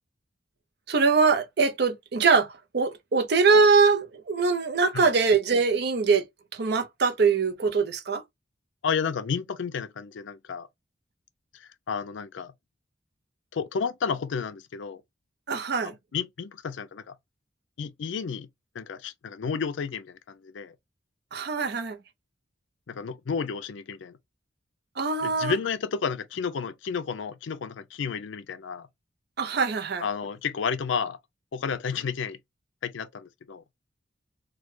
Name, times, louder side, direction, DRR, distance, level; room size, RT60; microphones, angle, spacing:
voice 1, 0.9-6.2 6.5-8.2 15.5-15.9 21.3-22.0 25.0-25.5 29.4-30.0, right 4 dB, 60° right, 0.6 m, -23 dB
voice 2, 8.8-10.7 11.5-12.5 13.5-15.0 15.8-17.2 17.8-18.5 18.7-20.8 22.9-24.2 25.2-28.9 30.0-31.2 31.5-32.4 32.8-33.6, left 6 dB, 75° left, 0.4 m, -31 dB
3.1 x 2.2 x 3.2 m
head